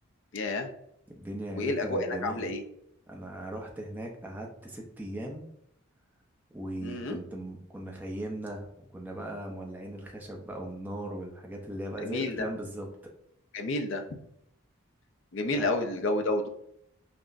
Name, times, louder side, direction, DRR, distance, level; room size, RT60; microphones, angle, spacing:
voice 1, 0.3-0.7 1.5-2.6 6.8-7.2 12.0-12.5 13.5-14.0 15.3-16.5, left 2 dB, 55° left, 5 dB, 0.5 m, -30 dB
voice 2, 1.1-2.5 3.1-5.5 6.5-12.9 15.5-15.6, right 1 dB, 10° right, 0 dB, 0.5 m, -38 dB
5.7 x 2.1 x 2.5 m, 0.75 s
head